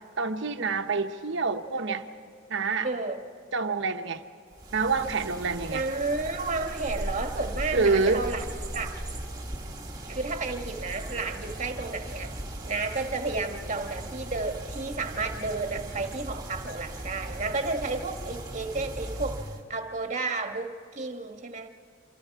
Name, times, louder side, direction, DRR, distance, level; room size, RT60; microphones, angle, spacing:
voice 1, 0.2-2.1 2.5-2.9 3.5-4.2 4.7-5.8 7.7-8.2, right 4 dB, 65° right, 1.1 m, -27 dB
voice 2, 2.8-3.2 5.7-8.4 8.7-9.0 10.1-12.3 12.7-21.7, right 3 dB, 35° right, 1.6 m, -32 dB
sound 1, 4.5-19.6, right 1 dB, 20° right, 1.8 m, -38 dB
28.5 x 25.0 x 4.8 m
head